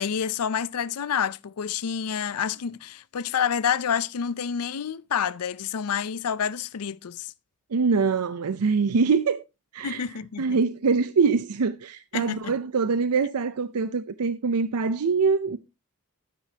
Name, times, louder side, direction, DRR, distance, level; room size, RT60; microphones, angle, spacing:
voice 1, 0.0-7.3 9.8-10.6 12.1-12.5, left 7 dB, 85° left, 0.5 m, -28 dB
voice 2, 7.7-9.4 9.7-10.0 10.4-15.6, right 5 dB, 85° right, 0.5 m, -24 dB
13.0 x 9.1 x 2.8 m
head